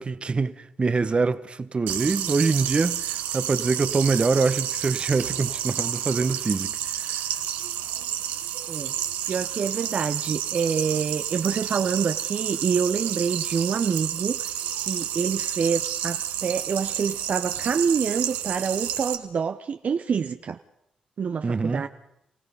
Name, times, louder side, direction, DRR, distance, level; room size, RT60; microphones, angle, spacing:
voice 1, 0.0-7.2 21.4-21.8, right 4 dB, 40° right, 1.1 m, -25 dB
sound 1, 1.9-19.2, right 11 dB, 90° right, 1.2 m, -30 dB
voice 2, 9.2-14.5 14.8-20.6 21.2-21.9, right 6 dB, 55° right, 0.7 m, -27 dB
28.0 x 17.0 x 5.5 m
supercardioid pair, 50°, 3 cm